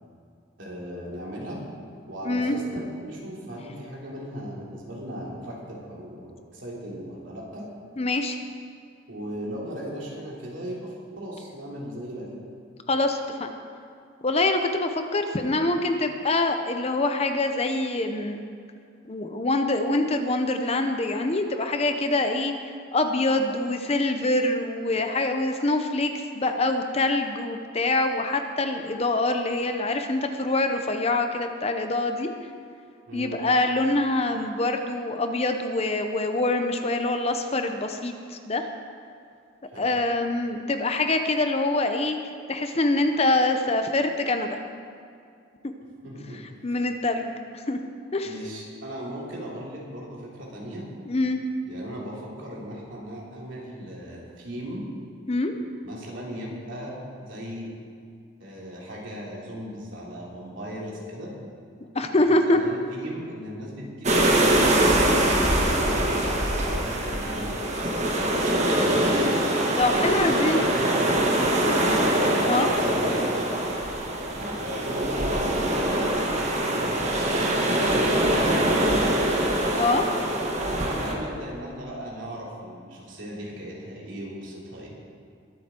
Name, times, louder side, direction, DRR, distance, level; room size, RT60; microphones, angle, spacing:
voice 1, 0.6-1.6 2.0-7.7 9.1-12.4 33.1-33.4 39.7-39.9 46.0-46.4 48.2-50.9 51.6-54.9 55.8-57.7 58.4-61.3 62.1-66.5 66.7-69.1 69.9-72.0 72.3-73.5 74.4-77.0 77.6-79.2 81.0-84.9, equal, 65° right, -4 dB, 3.2 m, -37 dB
voice 2, 2.2-2.6 8.0-8.4 12.9-13.5 14.2-18.4 19.0-22.5 22.9-32.3 33.1-38.6 39.8-42.2 42.5-44.6 46.6-47.3 47.7-47.8 48.1-48.3 51.1-51.4 55.3-55.5 61.9-62.6 69.8-70.6 72.5-72.7 79.7-80.1, left 2 dB, 30° left, 6 dB, 0.7 m, -25 dB
sound 1, 64.0-81.1, right 1 dB, 35° right, 1.5 m, -23 dB
21.5 x 8.0 x 4.4 m, 2.3 s
head